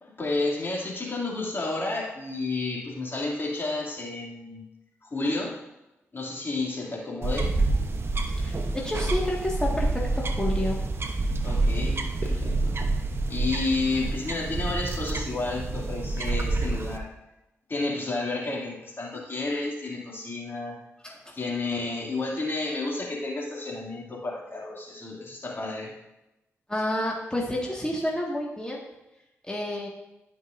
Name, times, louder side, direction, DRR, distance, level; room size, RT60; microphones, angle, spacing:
voice 1, 0.0-4.6 5.0-5.6 6.1-7.5 8.4-8.5 11.4-12.8 13.3-17.1 17.7-20.8 21.3-25.9, left 3 dB, 45° left, -2 dB, 2.5 m, -31 dB
sound 1, 7.2-17.0, right 2 dB, 50° right, 0.9 m, -27 dB
voice 2, 8.4-10.8 21.0-21.4 26.7-28.8 29.5-29.9, left 1 dB, 15° left, -3 dB, 1.8 m, -30 dB
14.0 x 5.4 x 2.6 m, 0.93 s
supercardioid pair, 50°, 5 cm